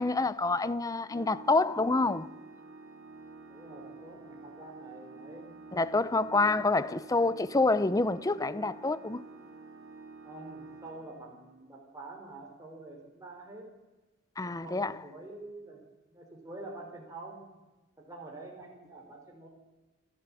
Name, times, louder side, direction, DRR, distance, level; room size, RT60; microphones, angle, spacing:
voice 1, 0.0-2.3 5.7-9.2 14.4-15.0, left 3 dB, 20° left, 0.6 m, -27 dB
Organ, 0.8-11.7, right 3 dB, 80° right, 3.6 m, -49 dB
voice 2, 3.5-5.6 10.2-13.7 14.6-15.8 16.1-17.5 18.0-19.5, right 2 dB, 20° right, 3.9 m, -46 dB
28.5 x 11.0 x 8.4 m
head